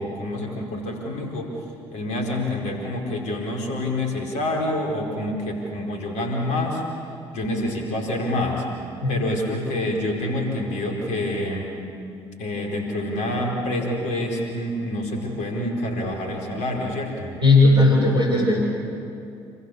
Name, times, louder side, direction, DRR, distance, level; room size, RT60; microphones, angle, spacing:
voice 1, 0.0-1.5 1.9-6.8 7.3-8.6 9.1-11.7 12.4-17.4, left 1 dB, 65° left, 1 dB, 4.8 m, -27 dB
voice 2, 17.4-18.6, left 2 dB, 85° right, -5 dB, 7.0 m, -16 dB
27.5 x 26.5 x 7.1 m, 2.5 s
figure-of-eight pair, 45°, 13 cm